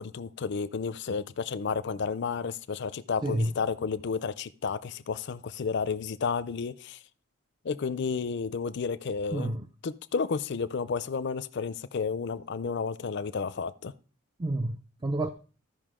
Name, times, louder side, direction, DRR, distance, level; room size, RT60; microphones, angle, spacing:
voice 1, 0.0-7.0 7.6-9.5 9.8-13.9, left 5 dB, 55° left, 0.4 m, -32 dB
voice 2, 3.2-3.5 9.3-9.6 14.4-15.3, right 1 dB, 20° right, 0.3 m, -29 dB
14.0 x 5.3 x 3.7 m
head